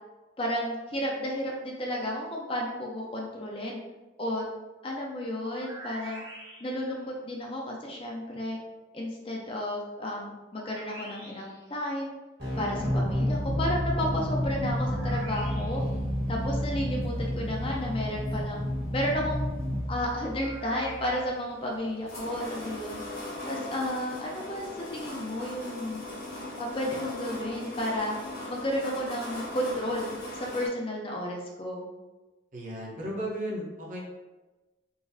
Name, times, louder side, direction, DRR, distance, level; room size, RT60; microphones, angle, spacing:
voice 1, 0.4-3.8 4.2-4.4 4.8-6.2 6.6-8.6 8.9-12.1 12.6-15.8 16.3-18.6 18.9-19.6 19.9-23.0 23.5-26.0 26.6-28.1 28.5-31.9, equal, 30° left, -1 dB, 0.5 m, -32 dB
sound 1, 5.3-7.0 10.5-11.7 14.8-16.0 20.2-21.5, right 1 dB, 80° right, 0.9 m, -46 dB
sound 2, 12.4-21.1, equal, 60° right, 1.4 m, -30 dB
sound 3, 15.7-30.7, left 1 dB, 50° left, 1.0 m, -41 dB
voice 2, 32.5-34.0, equal, 40° right, -3 dB, 0.7 m, -35 dB
3.8 x 2.5 x 2.6 m, 1.2 s
head